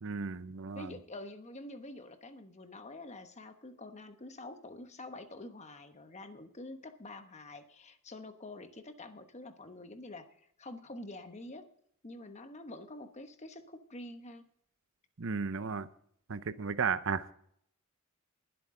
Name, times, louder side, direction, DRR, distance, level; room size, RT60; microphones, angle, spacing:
voice 1, 0.0-0.9 15.2-15.9 16.3-17.3, right 5 dB, 65° right, 13 dB, 0.7 m, -34 dB
voice 2, 0.7-11.7 12.0-14.5, left 2 dB, 30° left, 8 dB, 1.1 m, -47 dB
20.5 x 8.0 x 3.8 m, 0.66 s
head